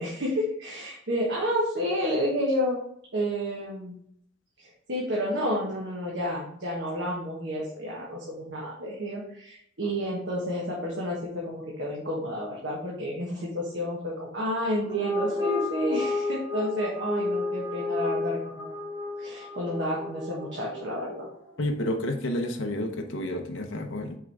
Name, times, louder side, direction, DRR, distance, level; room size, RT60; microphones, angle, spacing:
voice 1, 0.0-2.8 3.1-4.0 4.9-18.7 19.2-21.3, equal, 55° right, -4 dB, 1.3 m, -30 dB
sound 1, 14.8-21.4, left 2 dB, 30° right, 2.3 m, -32 dB
voice 2, 21.6-24.2, left 1 dB, 65° left, 5 dB, 0.8 m, -30 dB
5.7 x 4.8 x 3.5 m, 0.68 s
head